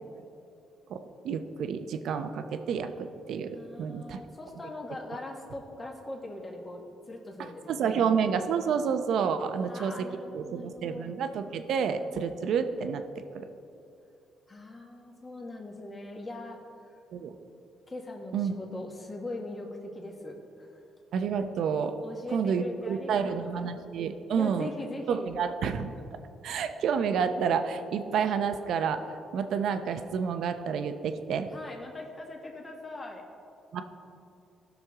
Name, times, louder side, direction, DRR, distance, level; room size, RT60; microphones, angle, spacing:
voice 1, 0.9-4.2 7.4-10.1 10.3-13.0 13.3-13.5 17.1-17.3 18.3-18.5 21.1-22.0 22.3-24.7 25.1-25.9 26.4-29.0 29.3-31.5 33.7-33.8, right 6 dB, 75° right, 8 dB, 0.6 m, -29 dB
voice 2, 3.5-8.1 9.5-11.2 14.5-16.6 17.9-19.7 19.9-20.8 22.0-23.8 24.3-25.3 31.5-33.2, left 2 dB, 30° left, 0 dB, 1.5 m, -41 dB
16.5 x 6.3 x 3.6 m, 2.6 s
cardioid pair, 90°, 0 cm